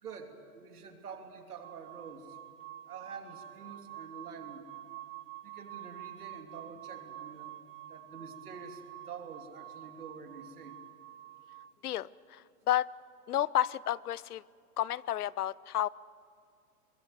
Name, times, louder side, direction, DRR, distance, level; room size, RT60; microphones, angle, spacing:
voice 1, 0.0-2.4 2.9-4.7 5.4-10.8, right 5 dB, 85° right, 4 dB, 3.1 m, -47 dB
sound 1, 1.6-11.7, right 13 dB, 25° right, 1.4 m, -48 dB
voice 2, 11.8-12.4 12.7-12.9 13.3-14.4 14.8-15.9, left 12 dB, 85° left, 22 dB, 0.7 m, -31 dB
23.0 x 21.5 x 7.8 m, 2.4 s
hypercardioid pair, 115°, 44 cm